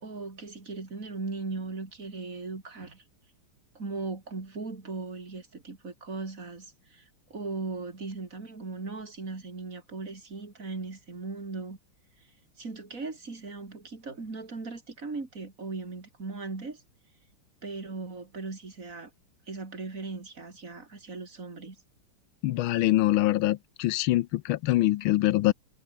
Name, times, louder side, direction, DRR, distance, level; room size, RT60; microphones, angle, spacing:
voice 1, 0.0-3.0 3.8-11.8 12.6-16.8 17.6-19.1 19.5-21.8, right 3 dB, 35° right, 3.7 m, -38 dB
voice 2, 22.4-25.5, left 16 dB, 75° left, 1.4 m, -24 dB
omnidirectional pair, 2.4 m